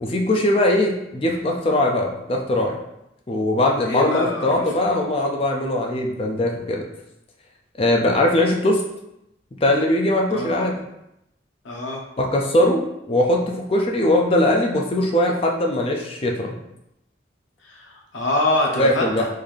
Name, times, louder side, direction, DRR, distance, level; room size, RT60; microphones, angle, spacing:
voice 1, 0.0-2.8 3.3-6.8 7.8-8.8 9.6-10.8 12.2-16.5 18.8-19.2, left 1 dB, 30° left, 0 dB, 0.4 m, -20 dB
voice 2, 3.8-4.7 10.3-10.7 11.6-12.0 17.6-19.3, left 2 dB, 85° left, -1 dB, 0.8 m, -25 dB
3.7 x 2.6 x 3.3 m, 0.85 s
head